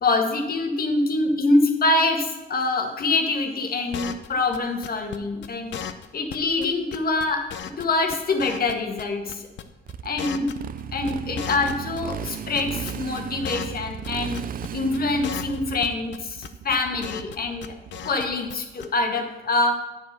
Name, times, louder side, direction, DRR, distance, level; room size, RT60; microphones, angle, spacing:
voice 1, 0.0-5.7 6.1-7.4 7.8-9.5 10.0-10.5 10.9-14.4 14.7-17.7 18.0-19.8, left 2 dB, 50° left, 4 dB, 1.6 m, -25 dB
sound 1, 3.9-4.3 4.5-4.6 4.8-5.2 5.4-5.5 5.7-6.1 6.3-6.4 6.6-6.7 6.9-9.0 9.3-9.6 9.9-12.0 12.3-13.8 14.0-14.1 14.3-14.7 14.9-15.0 15.2-15.6 15.8-16.2 16.4-17.4 17.6-18.2 18.5-18.6 18.8-18.9, left 9 dB, 65° left, 0.7 m, -35 dB
Motorcycle, 9.9-18.5, right 8 dB, 45° right, 0.4 m, -35 dB
8.6 x 5.1 x 6.7 m, 1.2 s
cardioid pair, 90°, 20 cm